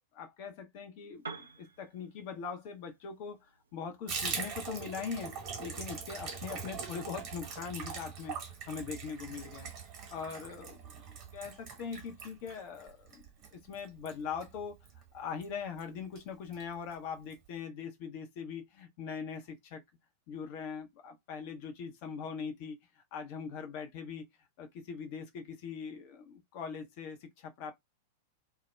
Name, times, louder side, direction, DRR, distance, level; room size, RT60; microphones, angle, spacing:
voice 1, 0.1-9.7 10.1-13.3 13.5-14.8 15.1-19.8 20.3-24.3 24.6-27.7, left 6 dB, 45° left, 0.5 m, -41 dB
Piano, 1.1-8.9, right 4 dB, 75° right, 0.5 m, -54 dB
Water tap faucet / Bathtub (filling or washing), 4.1-15.0 15.3-15.5 15.8-15.9 16.1-16.6 16.9-17.0 17.3-17.4, right 5 dB, 40° right, 0.9 m, -42 dB
2.2 x 2.1 x 3.1 m
figure-of-eight pair, 95°, 0 cm